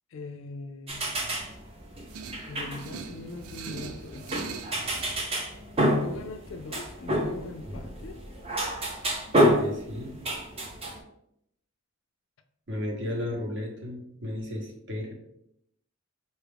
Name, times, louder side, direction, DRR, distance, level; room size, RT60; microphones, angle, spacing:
voice 1, 0.1-1.1 2.5-4.6 6.0-8.2, left 2 dB, 65° left, 8 dB, 0.3 m, -41 dB
sound 1, 0.9-11.0, equal, 25° right, 0.5 m, -29 dB
sound 2, 2.1-5.2, right 5 dB, 85° right, 0.4 m, -41 dB
voice 2, 9.4-10.2 12.7-15.1, left 1 dB, 55° right, 0 dB, 0.8 m, -34 dB
4.3 x 2.3 x 3.4 m, 0.78 s
head